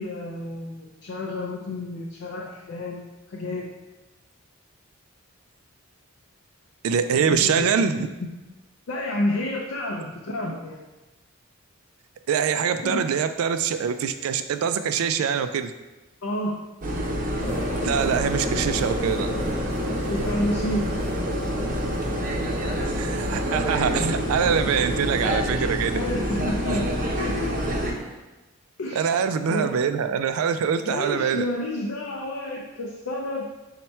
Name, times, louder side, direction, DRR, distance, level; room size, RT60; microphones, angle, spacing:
voice 1, 0.0-3.7 7.2-7.7 8.2-8.3 8.9-10.8 12.8-13.0 16.2-16.6 20.1-20.9 23.9-24.2 25.9-27.5 28.8-29.8 30.8-33.5, left 1 dB, 70° left, -1 dB, 0.5 m, -30 dB
voice 2, 6.8-8.0 12.3-15.7 17.8-19.3 22.9-26.0 29.0-31.4, right 7 dB, 80° right, 10 dB, 0.3 m, -24 dB
sound 1, 16.8-27.9, equal, 40° right, 0.6 m, -27 dB
sound 2, 17.4-28.2, equal, 5° right, 0.9 m, -36 dB
5.6 x 2.2 x 4.2 m, 1.1 s
head